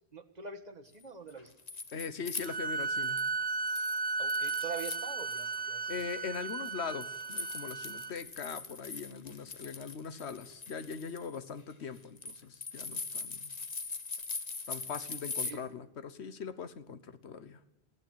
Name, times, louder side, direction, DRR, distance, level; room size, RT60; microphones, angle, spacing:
voice 1, 0.1-1.5 4.2-5.9 15.5-15.6, right 5 dB, 40° right, 6 dB, 1.7 m, -44 dB
sound 1, 1.3-3.3 3.7-5.6 5.9-15.5, left 4 dB, 40° left, 1.3 m, -42 dB
voice 2, 1.9-3.2 5.9-13.5 14.7-17.6, left 6 dB, 85° left, 14 dB, 1.4 m, -41 dB
sound 2, 2.4-8.1, right 4 dB, 85° right, 1.4 m, -35 dB
20.0 x 15.5 x 9.3 m, 0.84 s
omnidirectional pair, 1.1 m